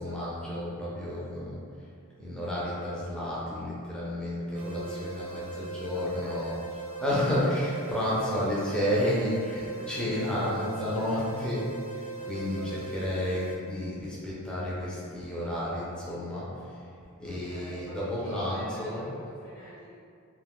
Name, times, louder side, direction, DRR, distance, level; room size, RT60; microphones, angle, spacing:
voice 1, 0.0-1.6 2.2-6.5 7.0-16.9 17.2-19.1, left 1 dB, 5° left, -8 dB, 0.5 m, -31 dB
voice 2, 4.5-7.2 9.6-11.5 12.1-12.8 17.2-20.0, equal, 70° left, -12 dB, 1.1 m, -46 dB
sound 1, 4.5-13.5, right 4 dB, 55° right, 0.7 m, -40 dB
2.4 x 2.4 x 3.5 m, 2.3 s
head